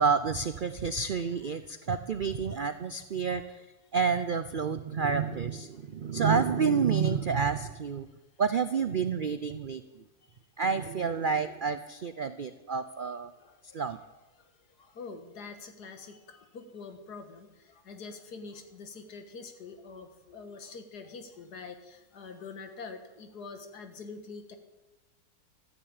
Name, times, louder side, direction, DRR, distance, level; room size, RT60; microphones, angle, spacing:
voice 1, 0.0-3.4 3.9-8.1 8.4-9.8 10.6-13.3 13.7-14.0, right 6 dB, 70° right, 11 dB, 0.4 m, -29 dB
voice 2, 13.4-13.8 14.8-24.6, left 4 dB, 80° left, 7 dB, 2.1 m, -45 dB
13.5 x 10.0 x 8.8 m, 1.1 s
omnidirectional pair, 1.7 m